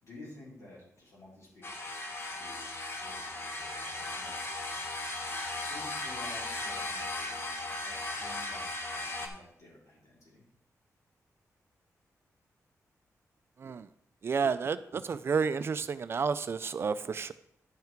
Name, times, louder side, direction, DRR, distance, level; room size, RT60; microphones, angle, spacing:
voice 1, 0.0-1.8 2.4-4.7 5.5-7.5 7.8-10.4, left 1 dB, 60° left, -6 dB, 4.3 m, -52 dB
sound 1, 1.6-9.3, left 2 dB, 40° left, 1.1 m, -37 dB
voice 2, 14.2-17.3, right 5 dB, 45° right, 13 dB, 0.3 m, -31 dB
10.5 x 5.8 x 4.5 m, 0.71 s
wide cardioid pair, 170°, 6 cm